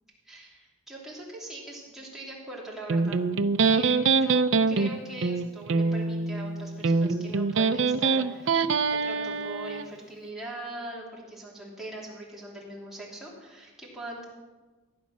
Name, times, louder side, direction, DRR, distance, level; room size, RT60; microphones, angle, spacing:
voice 1, 0.2-3.2 3.6-4.4 4.7-14.2, right 1 dB, ahead, -5 dB, 3.0 m, -41 dB
Electric guitar, 2.9-9.9, right 4 dB, 65° right, 0.5 m, -24 dB
15.5 x 9.5 x 6.3 m, 1.3 s
head